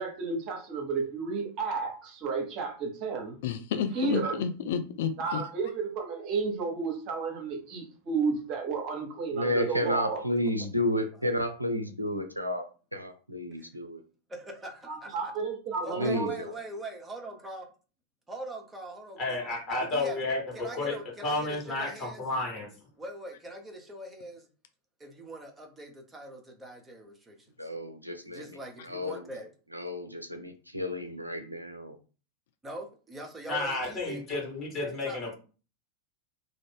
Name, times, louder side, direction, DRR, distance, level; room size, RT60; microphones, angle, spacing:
voice 1, 0.0-3.4 3.9-4.4 5.2-10.2 14.9-16.4, right 4 dB, 40° right, 0.9 m, -32 dB
voice 2, 3.4-5.4, left 7 dB, 55° left, 0.3 m, -31 dB
voice 3, 9.3-14.0 16.0-16.5 27.6-28.6 28.8-29.3 29.7-32.0, left 1 dB, 90° right, 0.4 m, -31 dB
voice 4, 14.3-15.3 15.8-17.7 18.3-19.5 19.8-20.2 20.5-22.2 23.0-24.5 25.0-27.5 28.3-29.5 32.6-34.2 34.8-35.2, right 1 dB, 10° right, 0.8 m, -42 dB
voice 5, 19.2-21.0 21.2-22.7 33.5-35.4, left 2 dB, 30° left, 1.5 m, -31 dB
2.5 x 2.4 x 3.6 m
figure-of-eight pair, 90°, 0 cm